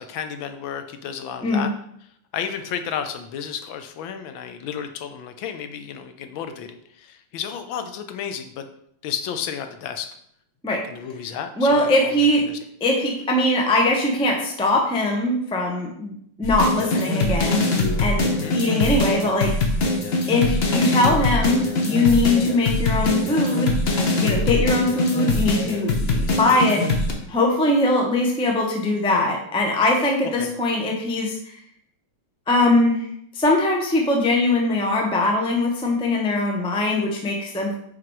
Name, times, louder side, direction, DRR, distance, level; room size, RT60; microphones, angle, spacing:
voice 1, 0.0-1.7 2.3-6.7 7.0-8.7 9.0-10.1 10.9-12.1 12.5-12.6 18.3-18.6 30.4-30.5, left 8 dB, 80° left, 8 dB, 1.5 m, -32 dB
voice 2, 11.6-12.5 12.8-16.1 16.4-17.6 18.0-19.6 20.3-23.7 24.2-26.9 27.3-31.6 32.5-33.1 33.3-37.7, left 2 dB, 5° left, 0 dB, 0.4 m, -21 dB
sound 1, 16.4-27.1, left 2 dB, 45° left, 0.9 m, -22 dB
5.9 x 4.7 x 4.6 m, 0.70 s
omnidirectional pair, 2.2 m